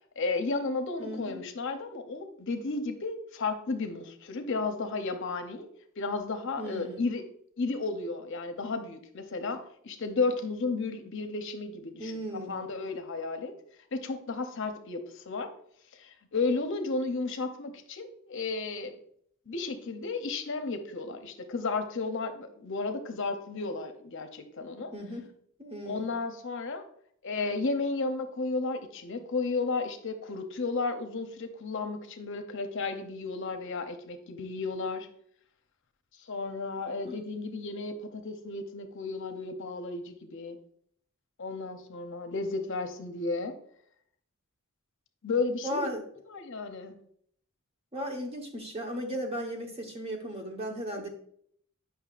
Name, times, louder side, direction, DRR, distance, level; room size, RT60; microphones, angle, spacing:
voice 1, 0.2-5.7 6.0-7.2 7.6-13.5 13.9-15.5 15.9-19.0 19.5-24.9 25.9-26.8 27.2-35.1 36.3-40.6 41.4-43.5 45.2-45.9 46.3-46.9, left 3 dB, 60° left, 7 dB, 0.7 m, -33 dB
voice 2, 1.0-1.4 6.6-7.1 12.0-12.6 24.9-25.3 25.6-26.1 37.1-37.2 45.6-46.0 47.9-51.1, equal, 30° right, 2 dB, 1.1 m, -36 dB
8.6 x 5.7 x 2.4 m, 0.64 s
head